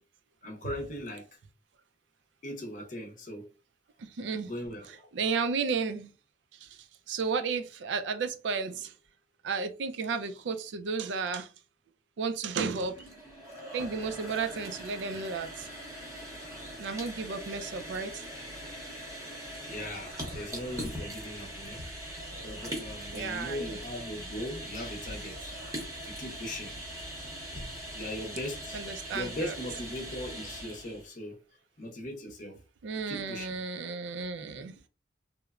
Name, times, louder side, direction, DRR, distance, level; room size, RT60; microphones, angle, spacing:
voice 1, 0.4-1.3 2.4-3.5 4.4-5.1 19.7-21.8 22.4-25.5 26.2-26.7 27.9-31.4 31.8-32.6 33.1-33.6, left 1 dB, 40° left, 0.6 m, -39 dB
voice 2, 4.0-4.5 5.1-6.1 6.6-6.7 7.1-8.9 9.4-11.5 12.2-12.9 13.7-15.7 16.8-18.1 23.1-23.8 28.7-29.5 32.8-34.8, right 5 dB, 70° right, 0.4 m, -33 dB
sound 1, 12.9-31.0, equal, 15° right, 0.7 m, -41 dB
3.0 x 2.0 x 2.3 m
head